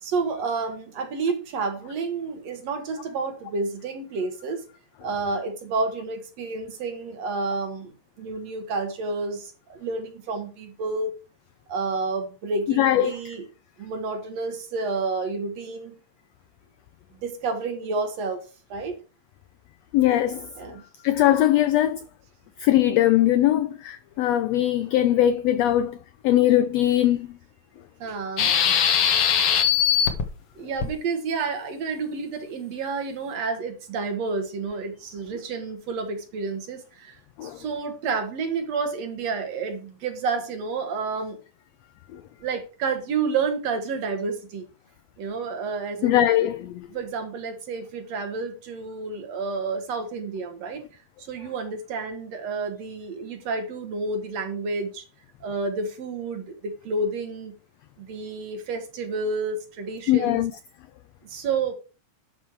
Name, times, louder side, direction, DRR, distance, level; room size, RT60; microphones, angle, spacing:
voice 1, 0.0-4.6 5.0-11.1 11.7-13.5 13.8-16.0 17.2-19.0 20.6-20.8 28.0-28.5 30.6-41.4 42.4-44.7 45.2-46.2 46.9-50.8 51.2-55.0 55.4-57.5 58.0-60.4 61.2-61.7, right 4 dB, 60° right, 2.4 m, -30 dB
voice 2, 12.8-13.3 19.9-20.5 21.0-22.0 22.6-26.0 26.2-27.3 37.4-37.6 42.1-42.2 46.0-46.9 60.1-60.5, left 13 dB, 85° left, 1.4 m, -21 dB
sound 1, 28.4-30.3 30.8-30.9, left 8 dB, 60° left, 1.8 m, -20 dB
11.5 x 5.5 x 4.6 m
omnidirectional pair, 3.6 m